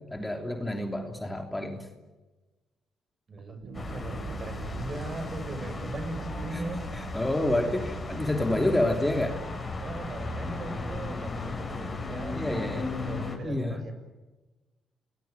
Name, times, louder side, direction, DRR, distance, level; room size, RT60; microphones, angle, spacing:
voice 1, 0.1-1.9 6.5-6.6 6.9-9.4 12.3-12.9 13.4-13.8, left 1 dB, 10° left, 4 dB, 3.2 m, -28 dB
voice 2, 3.3-6.9 9.8-13.9, right 2 dB, 40° right, 9 dB, 6.5 m, -39 dB
sound 1, 3.6-9.0, right 8 dB, 75° right, 1.6 m, -44 dB
sound 2, 3.7-13.4, left 3 dB, 30° left, 6.9 m, -36 dB
30.0 x 20.5 x 9.3 m, 1.2 s
cardioid pair, 90°, 0 cm